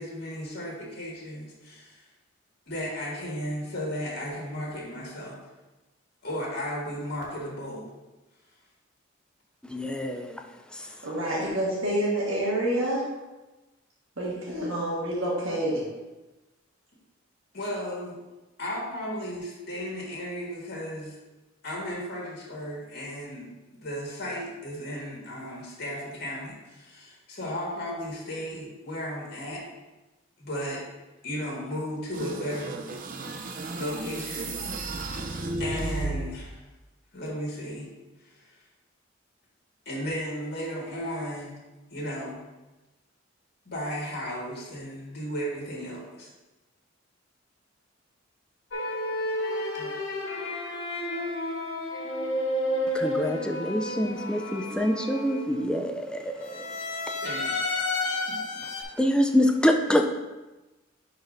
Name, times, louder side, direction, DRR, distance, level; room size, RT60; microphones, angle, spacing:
voice 1, 0.0-2.0 2.7-5.4 6.2-7.9 17.5-18.2 18.6-21.2 21.6-29.6 30.4-30.8 31.2-32.8 33.8-34.5 34.9-35.2 35.6-36.6 37.1-37.9 38.2-38.5 39.9-41.6 41.9-42.4 43.7-46.3 49.7-49.9 57.2-58.4, equal, 55° left, -3 dB, 1.6 m, -35 dB
voice 2, 9.7-10.4 10.7-10.8 52.9-56.8 59.0-60.1, left 1 dB, 5° left, 4 dB, 0.4 m, -26 dB
voice 3, 11.0-13.0 14.2-15.8, right 1 dB, 75° right, -6 dB, 1.6 m, -27 dB
sound 1, 32.1-36.5, right 2 dB, 45° right, 0.6 m, -33 dB
sound 2, 48.7-55.8 56.4-58.8, left 1 dB, 80° left, 1.4 m, -31 dB
10.5 x 4.1 x 2.6 m, 1.1 s
head